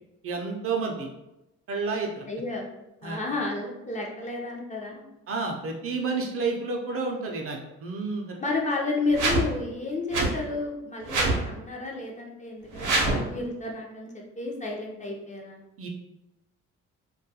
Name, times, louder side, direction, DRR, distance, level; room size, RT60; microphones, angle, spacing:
voice 1, 0.2-1.1 1.7-2.2 3.0-3.2 5.3-8.4 15.8-15.9, right 4 dB, 50° right, 1 dB, 0.5 m, -30 dB
voice 2, 2.3-2.7 3.0-5.1 8.4-15.6, left 3 dB, 25° left, -1 dB, 0.5 m, -31 dB
sound 1, 9.1-9.5 10.1-10.3 11.1-11.4 12.7-13.3, right 2 dB, 90° right, 0.6 m, -24 dB
2.3 x 2.2 x 2.7 m, 0.92 s
cardioid pair, 90°, 30 cm